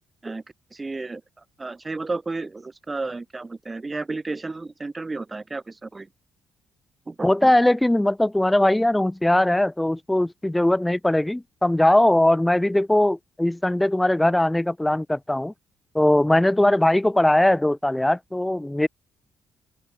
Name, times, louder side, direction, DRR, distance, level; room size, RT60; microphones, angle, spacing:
voice 1, 0.7-1.2 1.6-6.1 7.1-7.5, right 3 dB, 25° right, 1.4 m, -32 dB
voice 2, 7.2-15.5 15.9-18.9, left 1 dB, 10° left, 0.5 m, -20 dB
open air
cardioid pair, 90°, 0 cm